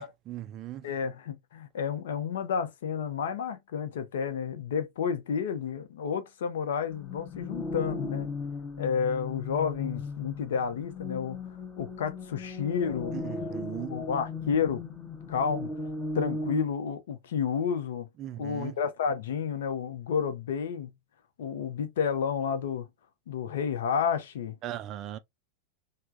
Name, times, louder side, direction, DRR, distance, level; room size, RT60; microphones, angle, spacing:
voice 1, 0.0-0.9 13.1-13.9 18.2-18.7 24.6-25.2, right 13 dB, 35° right, 0.3 m, -38 dB
voice 2, 0.8-8.3 8.8-11.4 11.8-13.2 13.7-14.8 15.3-15.7 16.1-18.1 18.4-20.9 21.4-22.9 23.3-24.5, left 7 dB, 60° left, 0.5 m, -31 dB
sound 1, 6.9-16.6, left 3 dB, 20° left, 0.8 m, -37 dB
3.2 x 2.0 x 2.5 m
figure-of-eight pair, 90°, 0 cm